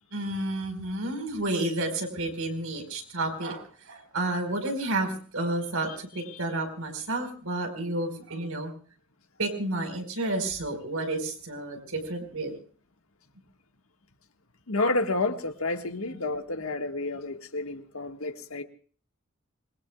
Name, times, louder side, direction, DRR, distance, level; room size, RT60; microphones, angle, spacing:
voice 1, 0.1-8.7 9.4-12.5, right 2 dB, 80° right, 4.7 m, -31 dB
voice 2, 14.7-18.6, left 2 dB, 75° left, 1.7 m, -30 dB
27.0 x 21.5 x 2.4 m
head